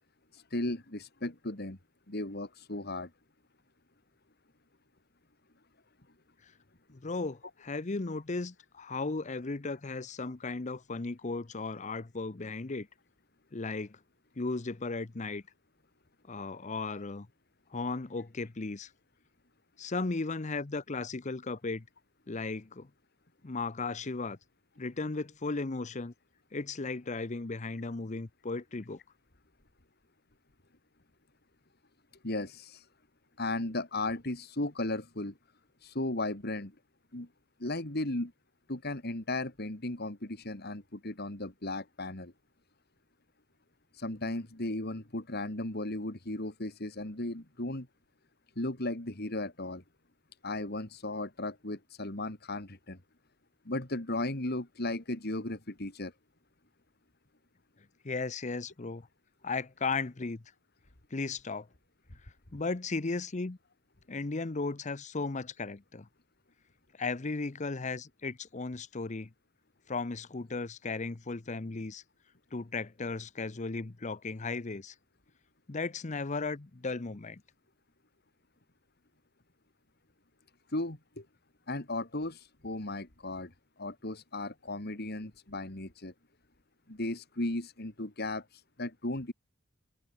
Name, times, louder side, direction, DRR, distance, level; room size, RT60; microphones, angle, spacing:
voice 1, 0.3-1.8 2.1-3.1 32.2-32.9 33.4-35.4 35.8-36.7 37.1-37.3 37.6-38.3 38.7-42.3 43.9-47.9 48.6-49.8 50.4-53.0 53.6-56.1 80.7-81.3 81.7-86.1 86.9-89.3, left 2 dB, 50° left, 2.7 m, -36 dB
voice 2, 6.9-12.9 13.5-14.0 14.4-15.4 16.3-17.3 17.7-18.9 19.8-21.8 22.3-22.9 23.4-24.4 24.8-26.1 26.5-29.0 58.0-59.1 59.4-60.4 61.1-61.7 62.5-63.6 64.1-66.1 67.0-69.3 69.9-72.0 72.5-74.9 75.7-77.4, left 3 dB, 35° left, 0.7 m, -36 dB
open air
head